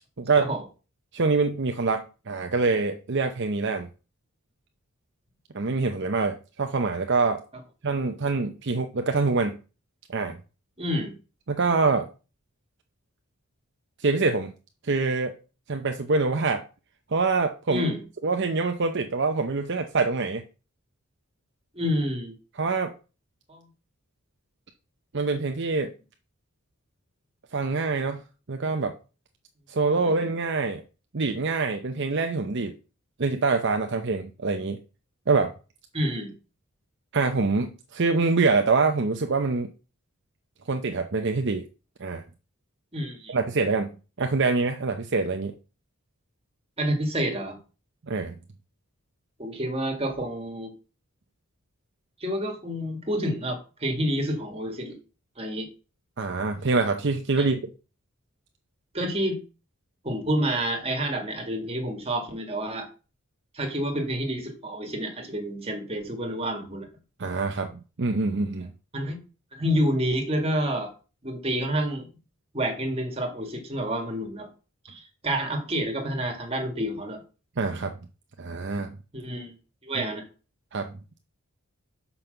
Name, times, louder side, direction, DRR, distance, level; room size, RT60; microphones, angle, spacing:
voice 1, 0.2-0.5 1.1-3.9 5.5-7.4 7.8-9.6 10.1-10.4 11.5-12.1 14.0-14.5 14.8-15.4 15.7-16.6 17.1-17.9 18.2-20.4 22.6-22.9 25.1-25.9 27.5-28.2 28.5-28.9 29.7-30.8 31.1-32.7 33.2-34.8 35.3-35.5 37.1-39.7 40.7-41.6 42.0-42.2 43.3-43.9 44.2-45.5 48.1-48.4 56.2-57.6 67.2-67.7 68.0-68.7 77.6-77.9 78.4-79.0 80.7-80.9, right 4 dB, 55° right, 5 dB, 0.7 m, -25 dB
voice 2, 10.8-11.1 17.7-18.0 21.7-22.3 23.5-23.6 30.0-30.2 35.9-36.3 42.9-43.3 46.8-47.6 49.4-50.7 52.2-55.0 55.4-55.7 57.4-57.5 58.9-59.4 60.0-62.9 63.5-66.9 68.9-69.2 69.5-70.9 71.2-72.1 72.5-74.5 74.8-77.2 79.1-79.5 79.8-80.3, equal, 30° right, 3 dB, 2.1 m, -28 dB
6.0 x 5.6 x 6.7 m, 0.34 s
head